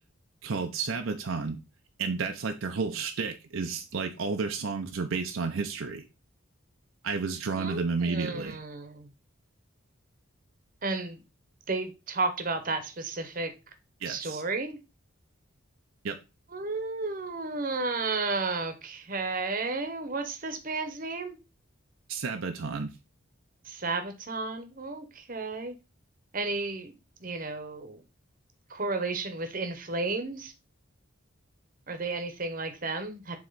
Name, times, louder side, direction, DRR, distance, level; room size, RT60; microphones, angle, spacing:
voice 1, 0.4-1.6 2.0-6.0 7.0-8.6 14.0-14.4 16.0-16.2 22.1-22.9, right 4 dB, 70° right, 0.6 m, -31 dB
voice 2, 7.6-9.1 10.8-11.2 11.7-13.5 14.1-14.8 16.5-21.4 23.7-25.7 26.3-26.9 27.2-28.0 28.7-30.5 31.9-33.4, right 3 dB, 40° right, 0.9 m, -33 dB
7.6 x 3.1 x 4.0 m
head